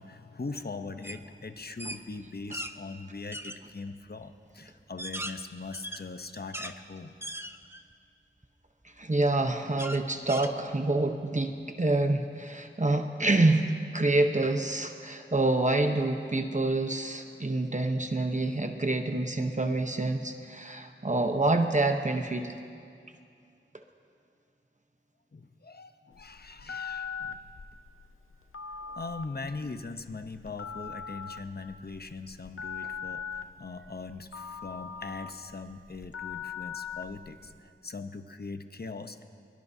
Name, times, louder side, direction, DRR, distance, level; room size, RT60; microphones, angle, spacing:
voice 1, 0.0-7.1 25.3-27.4 28.8-39.2, left 3 dB, 50° left, 8 dB, 0.8 m, -41 dB
sound 1, 1.0-1.2 1.6-2.7 3.3-3.6 4.2-4.3 4.8-6.8 7.2-7.9 8.4-8.5 9.8-11.0, right 1 dB, 10° right, 0.7 m, -39 dB
voice 2, 9.0-22.6, right 2 dB, 35° right, 5 dB, 0.9 m, -27 dB
Telephone, 26.1-37.6, left 6 dB, 85° left, 0.6 m, -41 dB
23.0 x 22.5 x 2.8 m, 2.4 s
wide cardioid pair, 60°, 21 cm